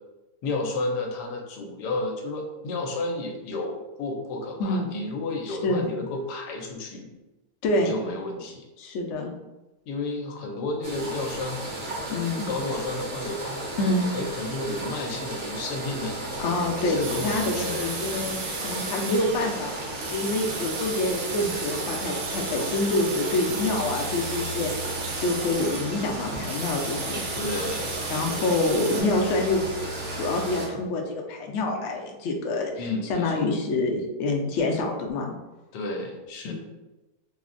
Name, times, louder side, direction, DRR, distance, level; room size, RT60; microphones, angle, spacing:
voice 1, 0.4-7.1 7.8-8.7 9.9-11.6 12.5-13.6 14.1-16.3 16.8-18.0 27.3-28.0 28.3-28.6 32.8-33.5 35.7-36.5, left 2 dB, 90° left, 2 dB, 1.2 m, -32 dB
voice 2, 4.6-4.9 5.6-5.9 7.6-7.9 8.8-9.3 12.1-12.5 13.8-14.0 16.4-17.0 17.2-18.4 18.6-19.7 20.1-24.7 25.2-27.2 28.1-29.6 30.1-35.3 36.4-36.5, left 2 dB, 70° left, 1 dB, 0.7 m, -26 dB
sound 1, 10.8-30.7, right 2 dB, 55° right, 0.9 m, -34 dB
sound 2, 17.0-29.0, right 3 dB, 80° right, 1.2 m, -35 dB
3.7 x 2.1 x 2.4 m, 1.1 s
omnidirectional pair, 1.7 m